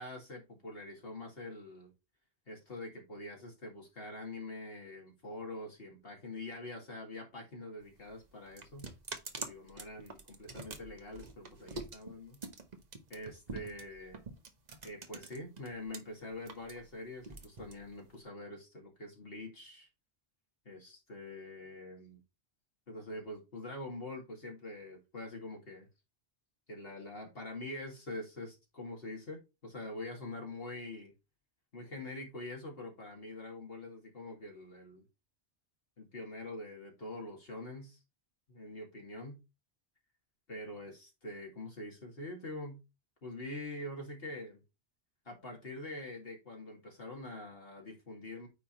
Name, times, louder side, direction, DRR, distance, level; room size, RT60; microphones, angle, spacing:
voice 1, 0.0-1.9 2.5-8.9 9.4-12.4 13.1-14.2 14.8-19.9 20.7-22.2 22.9-25.9 26.7-31.1 31.7-35.0 36.0-38.0 38.5-39.4 40.5-42.8 43.2-44.6 45.3-48.5, left 2 dB, 65° left, 2.3 m, -45 dB
sound 1, 7.8-16.0 16.3-18.2, right 3 dB, 40° right, 1.1 m, -46 dB
9.2 x 3.6 x 4.3 m
omnidirectional pair, 1.1 m